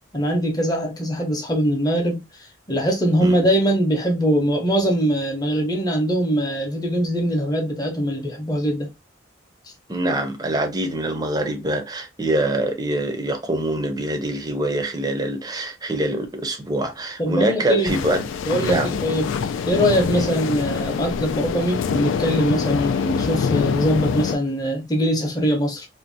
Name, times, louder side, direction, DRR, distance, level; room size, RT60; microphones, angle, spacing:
voice 1, 0.1-2.2 2.7-8.9 17.2-17.9 18.5-25.9, equal, 20° left, 0.6 m, -22 dB
voice 2, 9.9-18.2 18.6-19.0 20.1-20.3, right 1 dB, 20° right, 0.5 m, -24 dB
sound 1, 17.9-24.4, left 6 dB, 80° left, 0.3 m, -25 dB
2.6 x 2.1 x 2.5 m
head